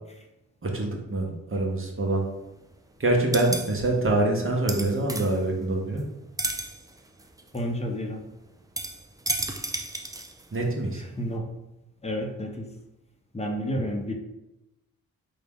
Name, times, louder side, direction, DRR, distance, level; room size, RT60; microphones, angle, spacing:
voice 1, 0.6-2.2 3.0-6.0 10.5-11.0, right 2 dB, 35° right, 0 dB, 1.0 m, -25 dB
sound 1, 2.0-2.7 3.0-6.1 6.3-10.8 11.2-11.3, right 2 dB, 10° right, 0.4 m, -34 dB
voice 2, 7.5-8.2 11.2-11.5 12.0-12.7 13.3-14.1, equal, 20° left, 2 dB, 0.8 m, -30 dB
3.7 x 2.3 x 3.6 m, 0.94 s
supercardioid pair, 45°, 36 cm